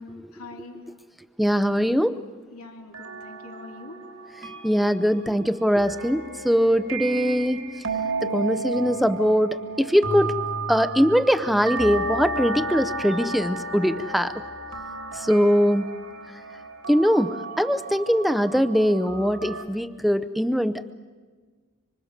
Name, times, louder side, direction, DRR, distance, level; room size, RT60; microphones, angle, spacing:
voice 1, 0.3-0.8 2.5-4.0, left 3 dB, 90° left, 2 dB, 3.1 m, -43 dB
voice 2, 1.4-2.2 4.4-7.6 8.2-10.4 10.7-14.3 15.1-15.9 16.9-20.9, equal, ahead, 12 dB, 0.6 m, -22 dB
sound 1, 2.9-19.6, right 3 dB, 85° right, 3.3 m, -33 dB
25.5 x 25.5 x 6.6 m, 1.5 s
head